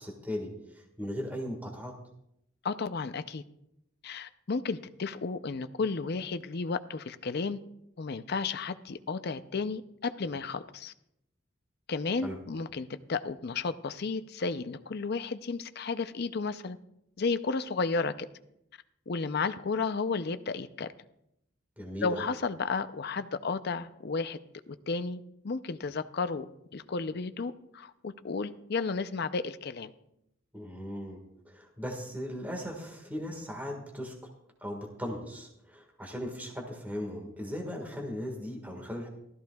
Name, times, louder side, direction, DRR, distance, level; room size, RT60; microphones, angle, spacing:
voice 1, 0.0-1.9 12.2-12.4 21.8-22.3 30.5-34.1 34.6-39.1, equal, 10° right, 1 dB, 1.7 m, -38 dB
voice 2, 2.6-3.4 4.0-7.6 8.0-10.9 11.9-16.8 17.2-18.3 19.1-20.9 22.0-24.4 24.9-29.9, left 4 dB, 50° left, 11 dB, 0.5 m, -33 dB
16.0 x 13.5 x 2.3 m, 0.80 s
head